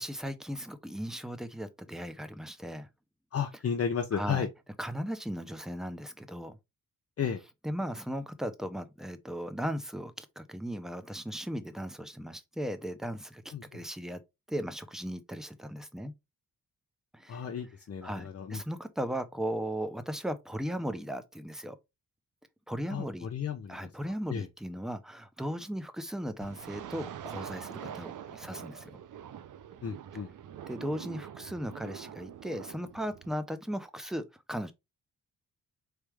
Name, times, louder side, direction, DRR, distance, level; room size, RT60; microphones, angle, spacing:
voice 1, 0.0-2.9 4.1-4.4 4.8-6.6 7.6-14.2 14.5-16.1 17.1-17.4 18.0-21.8 22.7-23.3 23.7-29.0 30.7-34.7, equal, ahead, 0.7 m, -37 dB
voice 2, 3.3-4.5 7.2-7.4 13.5-13.8 17.3-18.6 22.9-23.8 24.0-24.5 29.8-30.3, left 7 dB, 45° left, 0.8 m, -33 dB
sound 1, 26.4-33.4, right 9 dB, 60° right, 0.6 m, -44 dB
4.3 x 3.4 x 3.4 m
cardioid pair, 95°, 34 cm